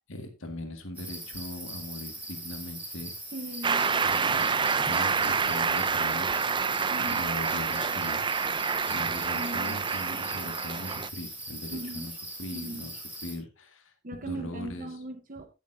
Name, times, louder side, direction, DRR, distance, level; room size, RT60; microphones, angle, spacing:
voice 1, 0.1-3.2 4.0-6.4 7.0-8.2 8.9-12.1 12.4-13.9 14.2-14.9, left 1 dB, 65° left, 5 dB, 2.0 m, -40 dB
sound 1, 0.9-13.3, right 1 dB, 10° right, 2.9 m, -41 dB
voice 2, 3.3-3.9 6.9-7.3 9.3-9.8 11.7-12.1 12.5-12.9 14.0-15.5, right 1 dB, 40° right, 7 dB, 1.0 m, -39 dB
Shout / Cheering / Applause, 3.6-11.1, right 5 dB, 25° right, 0.4 m, -28 dB
17.0 x 7.1 x 2.7 m, 0.27 s
head